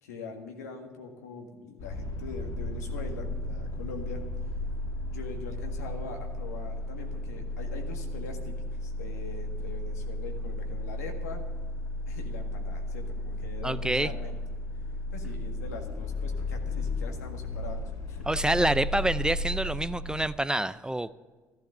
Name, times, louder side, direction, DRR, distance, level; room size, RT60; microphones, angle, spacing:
voice 1, 0.0-4.2 5.1-11.4 12.1-14.4 15.1-18.5, left 4 dB, 85° left, 3 dB, 1.7 m, -43 dB
sound 1, 1.8-20.3, left 1 dB, 60° left, 2.3 m, -34 dB
voice 2, 13.6-14.1 18.3-21.1, right 1 dB, 10° right, 15 dB, 0.5 m, -27 dB
14.0 x 11.5 x 6.7 m, 1.4 s
hypercardioid pair, 55°, 8 cm